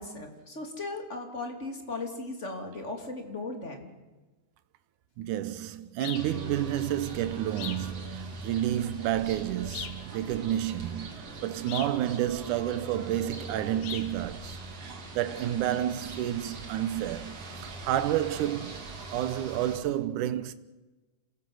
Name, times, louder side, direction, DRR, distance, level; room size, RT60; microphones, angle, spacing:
voice 1, 0.0-3.9, left 2 dB, 25° left, 3.0 m, -37 dB
voice 2, 5.2-14.6 15.1-17.4 17.6-20.5, right 12 dB, 80° right, 2.4 m, -30 dB
sound 1, 6.0-6.3 7.6-7.9 9.7-10.1 11.7-12.0 13.8-14.1, left 9 dB, 80° left, 2.9 m, -39 dB
sound 2, 6.2-19.8, right 3 dB, 55° right, 3.8 m, -42 dB
27.0 x 18.0 x 8.0 m
omnidirectional pair, 3.5 m